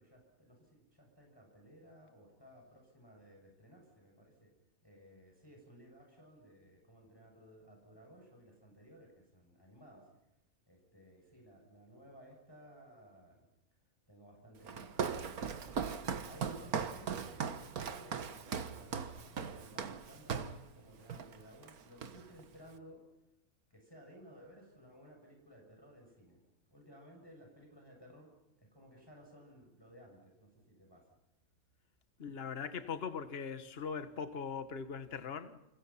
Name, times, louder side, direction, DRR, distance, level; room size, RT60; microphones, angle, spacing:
voice 1, 0.0-4.5 4.8-10.1 10.7-13.5 14.1-23.0 23.7-26.4 26.7-28.3 28.6-31.1, equal, 15° left, 7.1 m, -58 dB
Walk footsteps, 14.6-20.6 21.1-21.4 21.6-22.4, right 6 dB, 85° right, 1.8 m, -39 dB
voice 2, 32.2-35.6, left 6 dB, 45° left, 1.6 m, -40 dB
29.5 x 26.5 x 5.8 m
omnidirectional pair, 1.5 m